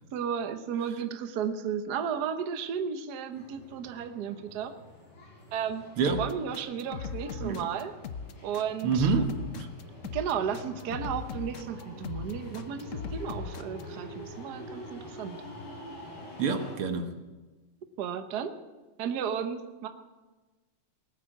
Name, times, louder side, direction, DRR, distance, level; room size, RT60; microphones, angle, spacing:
voice 1, 0.1-4.7 5.5-5.8 6.2-7.9 8.4-9.1 10.1-15.4 18.0-18.6 19.0-19.9, right 7 dB, 55° right, 1.3 m, -33 dB
sound 1, 3.3-16.8, left 1 dB, 65° left, 5.0 m, -46 dB
sound 2, 6.1-13.8, left 6 dB, 85° left, 0.6 m, -39 dB
voice 2, 8.8-9.7 16.4-17.2, right 5 dB, 80° right, 2.2 m, -27 dB
19.5 x 9.3 x 7.8 m
omnidirectional pair, 2.4 m